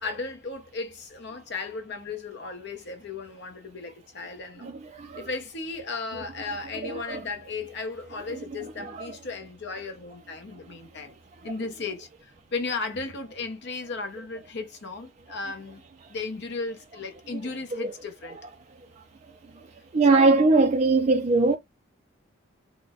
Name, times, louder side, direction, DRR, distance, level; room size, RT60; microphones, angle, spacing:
voice 1, 0.0-4.7 5.1-11.1 11.4-15.8 16.1-18.4 20.0-20.3, left 3 dB, 50° left, 0.7 m, -35 dB
voice 2, 4.6-5.3 6.8-7.2 9.0-9.1 19.9-21.6, right 3 dB, 30° right, 0.3 m, -21 dB
3.7 x 2.1 x 2.3 m
head